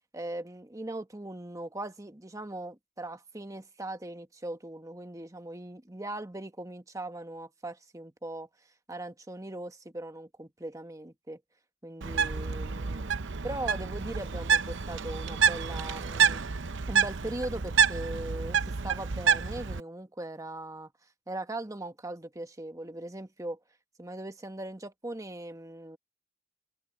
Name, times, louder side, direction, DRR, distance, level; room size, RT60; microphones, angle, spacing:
voice 1, 0.1-8.5 8.9-11.4 11.8-13.1 13.4-16.4 16.9-20.9 21.3-23.6 24.0-26.0, right 1 dB, 15° right, 1.3 m, -39 dB
Bird, 12.0-19.8, right 6 dB, 65° right, 0.7 m, -28 dB
open air
head